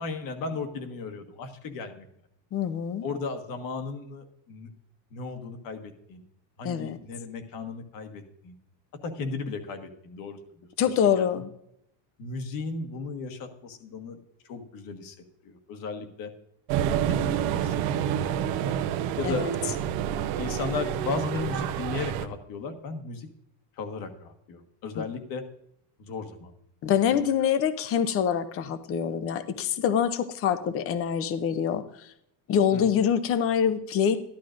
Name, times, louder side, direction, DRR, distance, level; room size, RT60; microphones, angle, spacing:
voice 1, 0.0-2.0 3.0-4.7 5.1-6.2 6.6-8.6 9.0-11.4 12.2-14.2 14.4-15.2 15.4-16.3 17.1-18.8 19.2-19.5 20.4-23.3 23.8-25.4 26.0-26.5 27.1-27.5 32.7-32.8, left 4 dB, 50° left, 6 dB, 1.5 m, -36 dB
voice 2, 2.5-3.1 6.6-7.0 10.8-11.5 19.2-19.5 25.0-25.1 26.8-32.1 32.5-34.2, left 8 dB, 30° left, 12 dB, 0.6 m, -25 dB
sound 1, 16.7-22.3, right 10 dB, 70° right, 0.9 m, -28 dB
13.5 x 11.5 x 2.5 m, 0.76 s
cardioid pair, 160°, 44 cm